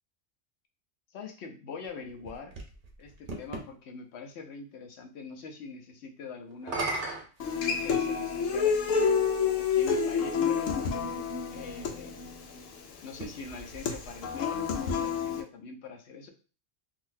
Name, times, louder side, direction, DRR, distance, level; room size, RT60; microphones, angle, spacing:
voice 1, 1.1-2.6 3.0-6.8 7.6-9.2 9.6-10.8 11.5-12.3 13.0-16.3, left 5 dB, 65° left, 4 dB, 0.9 m, -43 dB
sound 1, 1.8-3.7 6.5-8.3 9.2-9.3 13.0-14.6, right 2 dB, 50° right, 0.8 m, -38 dB
Human voice / Acoustic guitar, 7.4-15.4, left 6 dB, 85° left, 1.0 m, -29 dB
3.8 x 2.7 x 2.6 m, 0.36 s
omnidirectional pair, 1.3 m